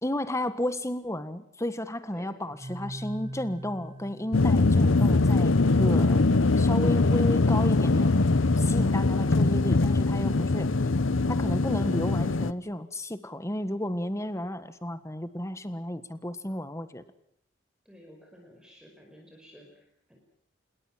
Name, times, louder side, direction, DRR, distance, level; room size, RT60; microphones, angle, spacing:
voice 1, 0.0-6.2 6.6-8.1 8.6-10.7 11.3-17.0, left 1 dB, 15° left, 12 dB, 1.5 m, -33 dB
sound 1, 2.5-5.3, right 1 dB, 25° right, 2.2 m, -41 dB
sound 2, 4.3-12.5, left 3 dB, 80° left, 0.9 m, -22 dB
voice 2, 17.9-20.2, equal, 5° right, 0 dB, 5.2 m, -52 dB
27.0 x 21.5 x 7.5 m, 0.68 s
head